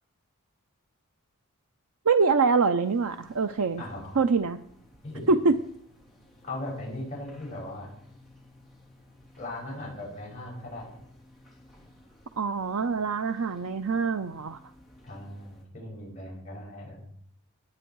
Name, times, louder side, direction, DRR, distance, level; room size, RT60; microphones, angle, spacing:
voice 1, 2.1-3.8 4.2-4.6 5.3-5.6 12.4-14.6, right 4 dB, 75° right, 9 dB, 0.6 m, -24 dB
sound 1, 2.8-15.7, left 1 dB, ahead, 3.0 m, -57 dB
voice 2, 3.8-4.2 5.0-5.2 6.4-7.9 9.4-10.9 15.0-17.1, left 1 dB, 30° left, -4 dB, 6.2 m, -38 dB
19.5 x 8.8 x 4.7 m, 0.71 s
head